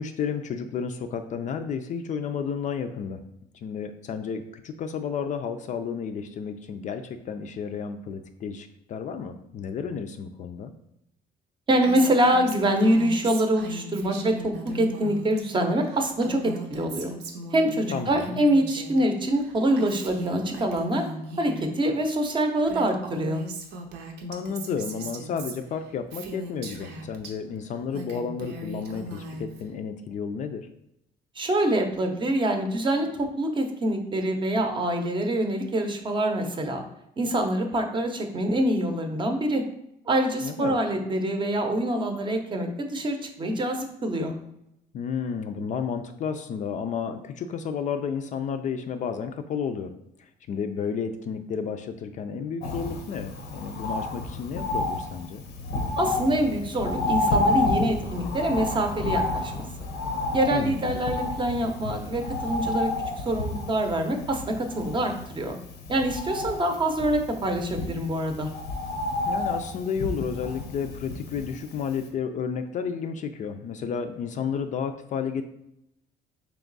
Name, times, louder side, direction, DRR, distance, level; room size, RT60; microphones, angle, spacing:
voice 1, 0.0-3.2 3.6-10.7 17.9-18.4 24.3-30.7 40.4-40.8 44.9-49.9 50.5-55.4 60.5-61.0 69.3-75.4, left 6 dB, 45° left, 8 dB, 0.4 m, -32 dB
voice 2, 11.7-17.2 17.5-21.1 21.4-23.4 31.4-36.8 37.2-39.6 40.1-44.3 56.0-59.6 60.3-62.9 63.2-65.6 65.9-68.5, right 1 dB, 30° right, 4 dB, 0.6 m, -25 dB
Female speech woman speaking, 11.8-15.4 15.7-19.0 19.3-21.7 22.3-22.4 22.6-27.3 27.7-29.7, right 1 dB, 80° right, 0.7 m, -38 dB
Bird, 52.6-71.7 72.1-72.2, left 2 dB, 90° left, 0.7 m, -30 dB
3.4 x 3.0 x 3.9 m, 0.80 s
cardioid pair, 110°, 17 cm